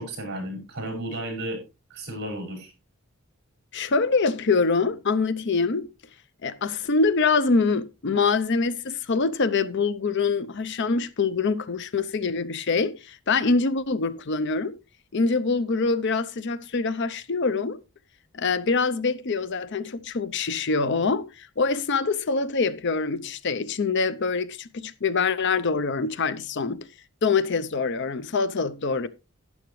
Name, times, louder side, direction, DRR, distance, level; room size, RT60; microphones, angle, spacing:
voice 1, 0.0-1.6 1.9-2.7, right 1 dB, 50° right, 5.8 m, -33 dB
voice 2, 3.7-5.9 6.4-14.7 15.1-17.8 18.3-26.9 27.2-29.1, left 4 dB, 55° left, 0.6 m, -25 dB
11.5 x 10.5 x 3.1 m
head